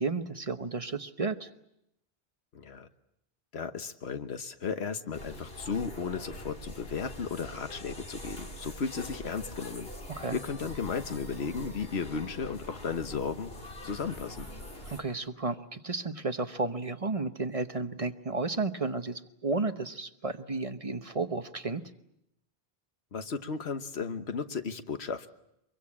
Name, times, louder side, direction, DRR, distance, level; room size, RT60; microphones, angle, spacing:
voice 1, 0.0-1.5 10.2-10.4 14.9-21.8, right 3 dB, 35° right, 9 dB, 1.1 m, -32 dB
voice 2, 2.5-2.9 3.5-9.9 10.3-13.5 13.8-14.5 23.1-25.3, left 5 dB, 90° left, 9 dB, 1.4 m, -35 dB
sound 1, 5.1-15.0, left 1 dB, 65° left, 3.1 m, -44 dB
24.5 x 23.0 x 8.7 m, 0.82 s
omnidirectional pair, 1.1 m